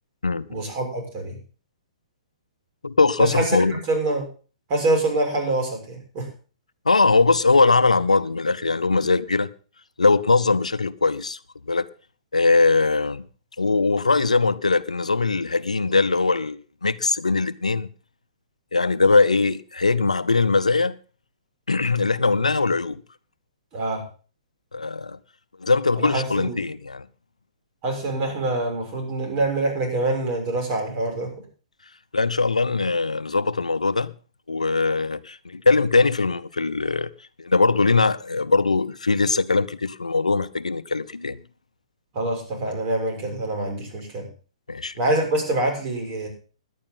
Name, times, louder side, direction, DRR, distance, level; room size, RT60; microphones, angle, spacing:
voice 1, 0.5-1.4 3.2-4.3 4.7-6.3 23.7-24.0 26.0-26.6 27.8-31.3 42.1-44.3 45.0-46.3, right 2 dB, 35° right, 6.5 m, -25 dB
voice 2, 2.8-3.7 6.9-9.5 10.0-11.4 11.7-11.9 12.3-13.3 13.6-17.9 18.7-20.9 21.7-23.0 24.7-25.2 25.6-27.1 32.1-34.1 34.5-37.1 37.4-41.4 44.7-44.9, left 3 dB, 85° left, 0.7 m, -21 dB
17.5 x 11.0 x 3.9 m
figure-of-eight pair, 120°, 4 cm